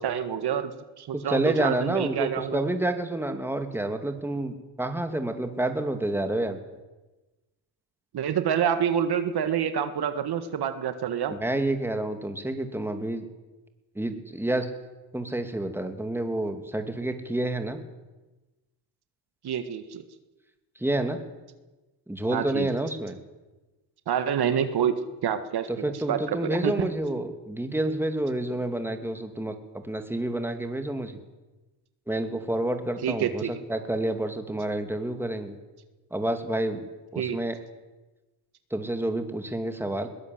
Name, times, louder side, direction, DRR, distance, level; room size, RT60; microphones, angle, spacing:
voice 1, 0.0-2.6 8.1-11.4 19.4-20.0 22.3-22.7 24.1-24.9 25.2-26.9 33.0-33.5 37.2-37.4, right 8 dB, 55° right, 9 dB, 1.7 m, -27 dB
voice 2, 1.1-6.6 11.3-13.2 13.9-14.7 15.1-17.8 20.8-21.2 22.1-23.2 25.7-31.2 32.1-35.6 36.1-36.9 37.1-37.6 38.7-40.1, right 1 dB, 5° right, 6 dB, 2.6 m, -29 dB
21.5 x 17.5 x 7.9 m, 1.1 s
cardioid pair, 85°, 45 cm